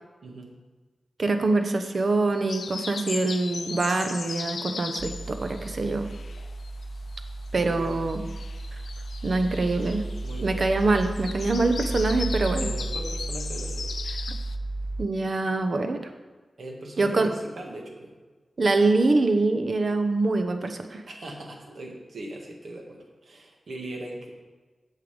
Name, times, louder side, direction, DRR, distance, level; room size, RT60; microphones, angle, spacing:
voice 1, 1.2-6.1 7.5-8.2 9.2-10.0 10.4-12.7 15.0-16.0 17.0-17.3 18.6-21.0, right 3 dB, 60° right, 7 dB, 0.9 m, -24 dB
sound 1, 2.5-6.8 7.1-14.6, left 5 dB, 80° left, 0.4 m, -38 dB
sound 2, 5.0-15.1, right 2 dB, 25° right, 0.6 m, -34 dB
voice 2, 7.5-8.0 10.2-10.7 12.6-13.9 16.6-18.1 21.1-24.3, right 1 dB, 75° right, 0 dB, 1.7 m, -39 dB
8.4 x 6.7 x 5.2 m, 1.3 s
cardioid pair, 60°, 0 cm